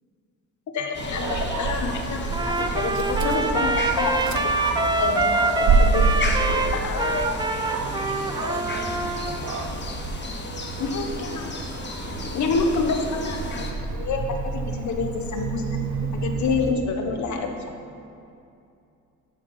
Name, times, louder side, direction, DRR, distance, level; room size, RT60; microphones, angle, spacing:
voice 1, 0.7-4.5 5.0-7.4 8.0-8.8 9.3-9.5 10.8-11.5 12.2-13.6 13.9-17.5, left 4 dB, 70° left, 4 dB, 1.4 m, -28 dB
sound 1, 0.9-13.7, left 3 dB, 35° left, 1.4 m, -35 dB
Dog, 1.0-16.7, right 4 dB, 70° right, 0.8 m, -28 dB
Trumpet, 2.3-9.4, right 3 dB, 15° right, 0.6 m, -25 dB
11.5 x 6.3 x 5.7 m, 2.6 s
cardioid pair, 90°, 30 cm